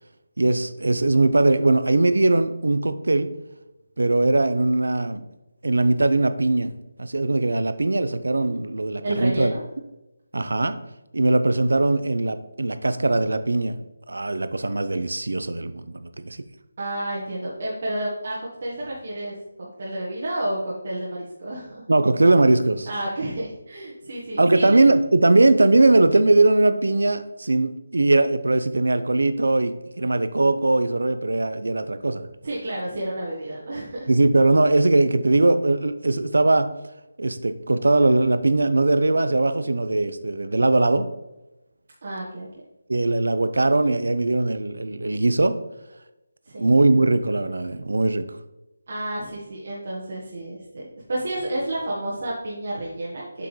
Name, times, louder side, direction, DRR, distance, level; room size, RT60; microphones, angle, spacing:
voice 1, 0.4-3.3 4.0-5.2 5.6-6.7 7.0-9.5 10.3-10.7 11.1-13.8 14.1-16.4 21.9-22.9 24.4-32.2 34.1-36.7 37.2-41.1 42.9-45.6 46.6-48.2, right 2 dB, 80° right, 11 dB, 0.7 m, -20 dB
voice 2, 9.0-9.6 16.8-21.8 22.9-24.9 32.4-34.1 42.0-42.5 46.5-46.7 48.9-53.5, right 1 dB, 55° right, -5 dB, 1.5 m, -30 dB
7.8 x 5.7 x 3.2 m, 0.97 s
figure-of-eight pair, 165°, 0 cm